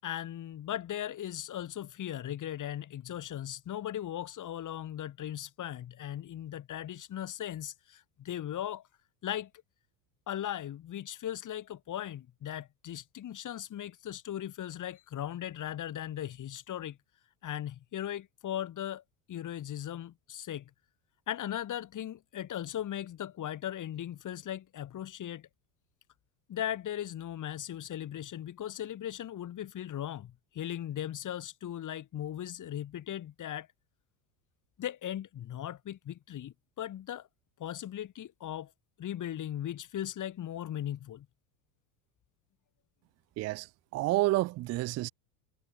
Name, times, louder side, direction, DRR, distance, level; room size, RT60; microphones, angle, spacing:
voice 1, 0.0-8.8 9.2-9.5 10.3-17.0 17.4-19.0 19.3-20.7 21.3-25.5 26.5-33.7 34.8-37.3 37.6-38.7 39.0-41.3, left 11 dB, 40° left, 4.2 m, -38 dB
voice 2, 43.4-43.7 43.9-45.1, right 18 dB, 35° right, 0.5 m, -29 dB
supercardioid pair, 120°, 49 cm